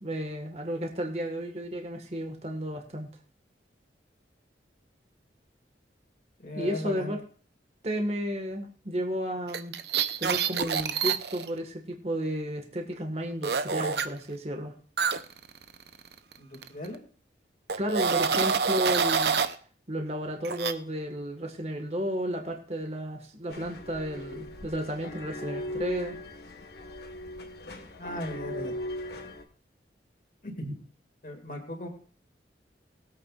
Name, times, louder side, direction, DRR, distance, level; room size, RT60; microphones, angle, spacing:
voice 1, 0.0-3.1 6.5-7.2 7.8-9.7 10.2-14.7 17.8-19.4 19.9-26.2, equal, 35° right, 3 dB, 1.6 m, -33 dB
voice 2, 6.4-7.2 16.4-17.0 28.0-28.7 30.4-30.8 31.2-31.9, left 1 dB, 45° left, 2 dB, 2.2 m, -37 dB
sound 1, 9.5-11.5 13.4-14.1 15.0-16.4 16.6-16.9 17.7-19.5 20.4-20.7, right 6 dB, 65° right, 0.7 m, -27 dB
sound 2, 23.5-29.4, left 1 dB, 65° left, 1.4 m, -39 dB
21.0 x 8.5 x 2.4 m, 0.43 s
head